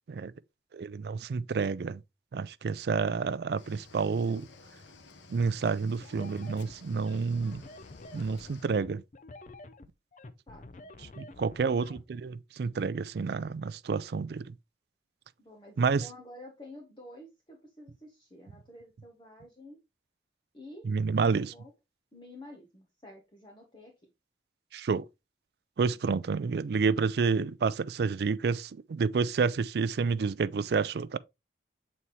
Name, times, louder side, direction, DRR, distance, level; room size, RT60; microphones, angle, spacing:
voice 1, 0.7-2.0 2.3-4.5 5.3-7.6 8.1-9.0 11.2-14.5 15.8-16.1 20.8-21.5 24.7-25.1 25.8-31.2, right 5 dB, 60° right, 0.4 m, -29 dB
Cricket / Waves surf, 3.6-8.7, left 3 dB, 90° left, 0.8 m, -53 dB
sound 1, 6.0-12.0, left 2 dB, 40° left, 0.5 m, -48 dB
voice 2, 10.5-10.9 15.4-19.8 20.5-20.8 21.2-21.7 22.1-23.9, left 1 dB, 25° left, 1.0 m, -50 dB
7.3 x 4.2 x 3.1 m
head